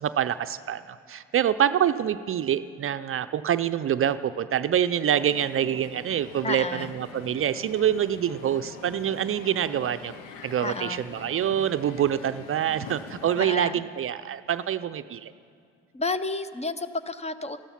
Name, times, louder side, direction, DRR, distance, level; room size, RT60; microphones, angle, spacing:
voice 1, 0.0-10.1 10.4-15.3, right 10 dB, 40° right, 11 dB, 0.5 m, -26 dB
Crowd, 5.1-13.4, left 6 dB, 80° left, 0.9 m, -44 dB
voice 2, 6.4-6.9 10.6-11.0 13.4-13.8 15.9-17.6, left 3 dB, 20° left, 13 dB, 0.6 m, -31 dB
14.0 x 12.5 x 5.8 m, 2.3 s
hypercardioid pair, 60°, 33 cm